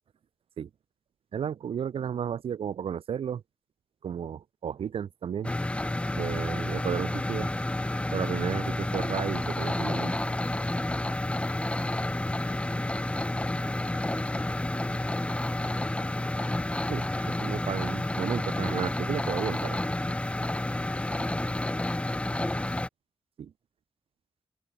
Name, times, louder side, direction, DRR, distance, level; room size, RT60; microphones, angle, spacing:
voice 1, 1.3-3.4 4.0-5.5 6.1-7.5 8.1-10.1 16.9-19.9 23.4-23.5, right 8 dB, 75° right, 0.4 m, -33 dB
sound 1, 5.4-22.9, left 1 dB, 10° left, 0.7 m, -30 dB
voice 2, 6.1-6.2, left 3 dB, 35° left, 6.5 m, -55 dB
open air
wide cardioid pair, 105°, 10 cm